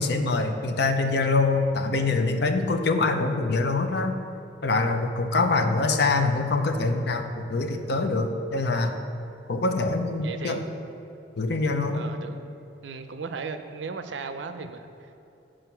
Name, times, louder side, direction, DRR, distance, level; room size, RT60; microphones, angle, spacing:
voice 1, 0.0-4.2 4.6-9.0 9.5-10.6 11.4-12.0, left 3 dB, 65° left, 5 dB, 0.6 m, -24 dB
voice 2, 10.2-10.6 11.9-12.4 12.8-15.2, right 4 dB, 90° right, 8 dB, 0.5 m, -36 dB
7.8 x 5.0 x 5.7 m, 2.8 s
head